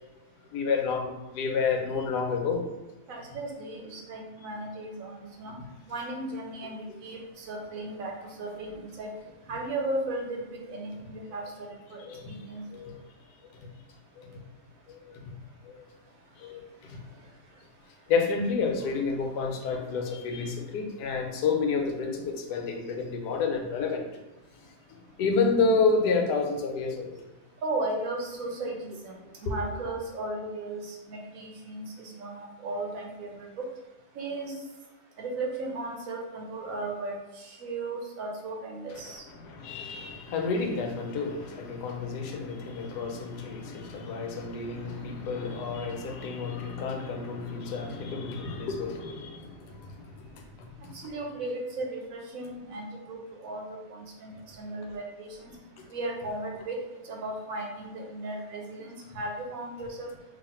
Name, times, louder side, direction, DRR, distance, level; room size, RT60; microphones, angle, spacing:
voice 1, 0.5-2.6 12.1-12.3 12.7-12.9 14.2-14.4 14.9-15.0 15.6-15.7 16.4-16.6 18.1-24.1 25.2-27.2 39.4-49.9, left 4 dB, 85° left, 2 dB, 1.2 m, -29 dB
voice 2, 3.1-5.6 5.9-9.1 9.5-12.6 27.6-29.1 29.4-33.7 34.1-34.5 35.2-39.2 50.8-55.5 55.9-56.8 57.0-60.1, right 2 dB, 65° right, 0 dB, 1.0 m, -36 dB
3.2 x 2.4 x 4.2 m, 1.0 s
omnidirectional pair, 1.7 m